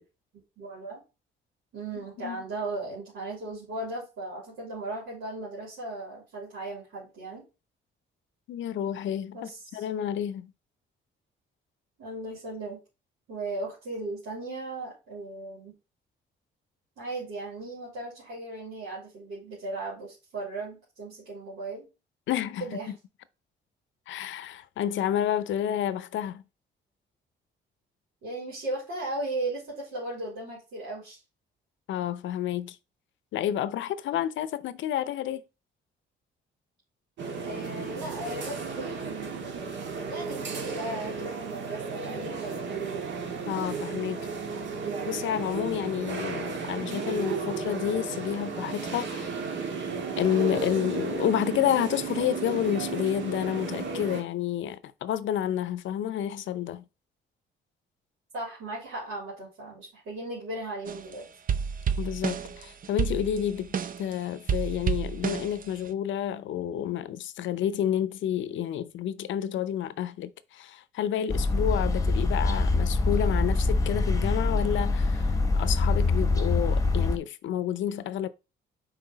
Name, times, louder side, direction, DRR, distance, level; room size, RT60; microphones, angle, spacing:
voice 1, 0.6-1.0 1.7-7.4 9.3-9.8 12.0-12.8 13.3-15.7 17.0-21.8 22.6-22.9 28.2-31.2 37.4-39.4 40.1-42.7 58.3-61.3, right 2 dB, 85° right, 3.4 m, -37 dB
voice 2, 1.9-2.4 8.5-10.5 22.3-23.0 24.1-26.4 31.9-32.8 33.3-35.4 43.5-44.3 45.1-49.3 50.2-56.8 62.0-63.7 64.0-78.3, left 10 dB, 70° left, 0.6 m, -30 dB
sound 1, 37.2-54.2, right 5 dB, 65° right, 1.7 m, -34 dB
sound 2, 60.9-61.1 61.5-64.1 64.5-65.9, right 7 dB, 45° right, 0.6 m, -30 dB
sound 3, 71.3-77.2, left 3 dB, 15° left, 1.0 m, -24 dB
5.6 x 4.3 x 4.0 m
cardioid pair, 90°, 20 cm